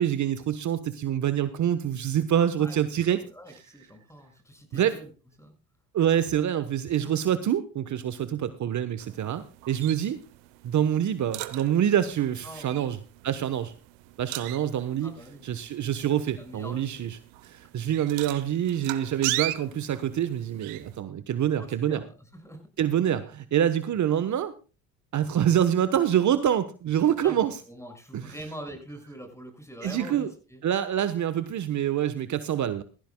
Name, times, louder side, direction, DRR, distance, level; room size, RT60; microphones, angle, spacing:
voice 1, 0.0-3.2 4.7-5.0 5.9-10.2 10.6-13.0 13.2-13.7 14.2-15.1 15.4-17.2 17.4-22.0 22.8-24.5 25.1-27.5 28.1-28.3 29.8-30.3 30.6-32.8, right 10 dB, 50° right, 12 dB, 1.2 m, -26 dB
voice 2, 3.1-5.1 5.4-5.5 12.4-12.8 15.0-15.6 16.4-17.0 21.5-22.6 27.2-30.6, equal, 5° left, 7 dB, 6.5 m, -44 dB
sound 1, 9.0-21.0, right 18 dB, 80° right, 1.1 m, -39 dB
18.0 x 15.0 x 2.3 m, 0.34 s
hypercardioid pair, 60°, 38 cm